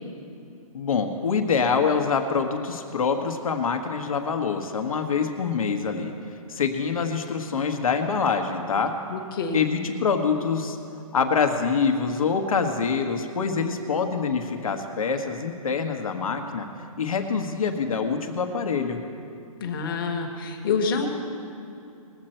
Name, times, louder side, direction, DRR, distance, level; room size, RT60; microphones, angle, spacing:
voice 1, 0.7-6.1 6.5-8.9 9.5-10.8 11.1-16.7 17.0-19.0, left 5 dB, 65° left, 5 dB, 1.5 m, -25 dB
voice 2, 9.1-9.6 19.6-21.1, left 5 dB, 35° left, 3 dB, 1.6 m, -27 dB
20.5 x 7.9 x 4.4 m, 2.6 s
hypercardioid pair, 165°, 19 cm